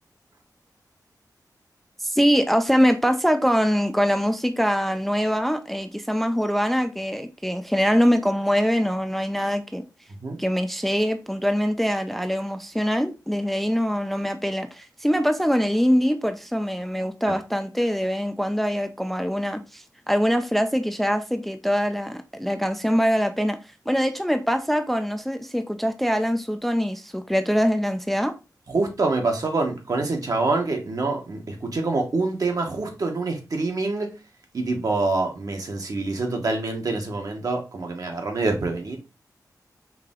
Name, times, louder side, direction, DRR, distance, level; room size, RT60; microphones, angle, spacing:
voice 1, 2.0-9.8 10.4-23.6 23.9-28.4, equal, 5° left, 0.4 m, -23 dB
voice 2, 28.7-34.1 34.5-39.0, right 3 dB, 55° right, 1.1 m, -26 dB
4.8 x 2.9 x 3.6 m
wide cardioid pair, 105°, 7 cm